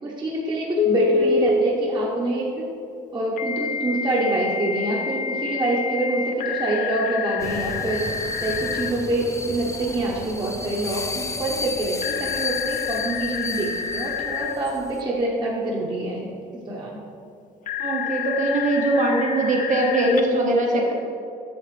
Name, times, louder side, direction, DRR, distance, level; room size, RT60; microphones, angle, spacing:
voice 1, 0.0-2.6 3.1-8.0 8.4-16.3 16.7-17.0, right 2 dB, 25° right, -4 dB, 1.1 m, -26 dB
Telephone, 0.8-1.5 3.4-8.9 12.0-14.5 17.7-20.2, left 6 dB, 50° left, 0.7 m, -27 dB
sound 1, 7.4-15.0, left 4 dB, 20° left, 0.4 m, -33 dB
voice 2, 17.8-20.9, right 2 dB, 45° right, -1 dB, 1.2 m, -21 dB
8.3 x 6.5 x 3.3 m, 2.6 s
cardioid pair, 110°, 17 cm